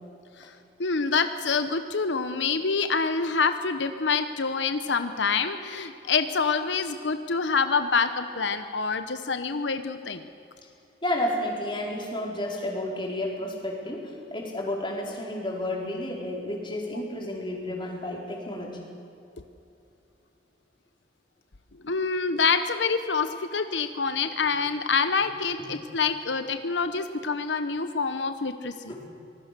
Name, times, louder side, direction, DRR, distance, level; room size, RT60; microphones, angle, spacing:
voice 1, 0.8-10.2 21.8-28.9, left 5 dB, 90° left, 9 dB, 1.0 m, -26 dB
voice 2, 11.0-18.8 25.6-25.7 28.9-29.0, left 1 dB, 30° left, -1 dB, 4.5 m, -31 dB
26.0 x 19.5 x 6.8 m, 2.8 s
head